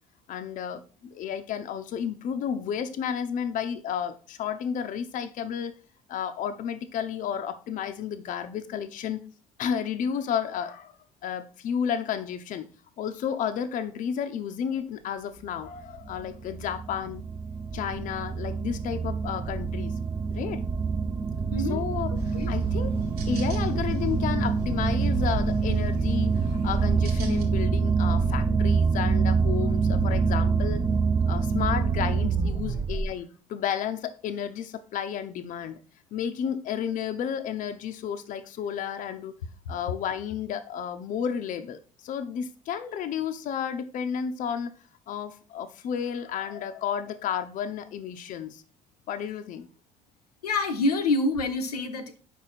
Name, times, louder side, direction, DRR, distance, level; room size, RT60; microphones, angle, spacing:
voice 1, 0.3-5.8 6.1-9.2 9.6-10.9 11.2-12.7 13.0-17.2 17.7-19.9 20.3-20.6 21.6-22.9 23.3-30.9 31.3-35.8 36.1-39.3 39.7-44.7 45.1-48.6 49.1-49.7, left 8 dB, 40° left, 0.6 m, -32 dB
sound 1, 15.6-33.1, right 5 dB, 20° right, 0.6 m, -26 dB
sound 2, 22.2-27.4, equal, 75° right, 1.2 m, -44 dB
voice 2, 50.4-52.2, left 2 dB, 80° left, 0.7 m, -26 dB
5.2 x 5.1 x 4.1 m
figure-of-eight pair, 60°, 20 cm